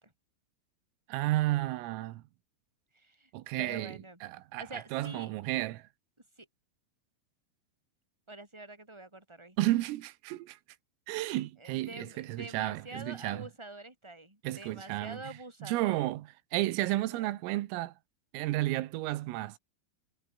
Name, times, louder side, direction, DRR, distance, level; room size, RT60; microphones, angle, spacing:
voice 1, 1.1-2.2 3.3-5.9 9.6-10.6 11.1-13.5 14.4-15.2 15.6-17.9 18.3-19.6, right 17 dB, 90° right, 3.9 m, -32 dB
voice 2, 2.9-3.3 3.6-4.2 4.6-5.3 6.4-6.5 8.3-9.7 11.6-16.1 17.1-17.4, right 2 dB, 5° right, 5.5 m, -46 dB
omnidirectional pair, 5.8 m